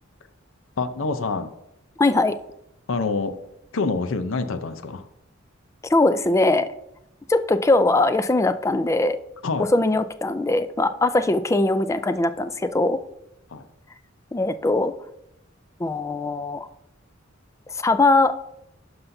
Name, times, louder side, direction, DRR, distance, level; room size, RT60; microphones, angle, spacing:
voice 1, 0.8-1.5 2.9-3.4 3.7-5.0 9.4-9.7 13.5-13.6, left 3 dB, 70° left, 10 dB, 0.6 m, -26 dB
voice 2, 2.0-2.4 5.9-6.7 7.3-9.2 9.6-13.0 14.3-14.9 15.8-16.7 17.8-18.4, left 2 dB, 15° left, 11 dB, 0.3 m, -21 dB
11.5 x 5.5 x 2.7 m, 0.83 s
head